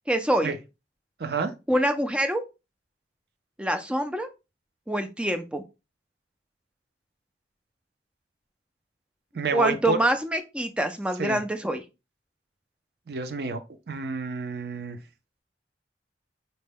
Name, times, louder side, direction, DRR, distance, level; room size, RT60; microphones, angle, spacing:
voice 1, 0.1-0.5 1.7-2.4 3.6-4.3 4.9-5.6 9.5-11.8, right 1 dB, 5° right, 0.4 m, -25 dB
voice 2, 1.2-1.5 9.3-10.0 11.2-11.4 13.1-13.6 13.9-15.0, right 4 dB, 55° right, 0.5 m, -29 dB
4.1 x 2.2 x 3.4 m
head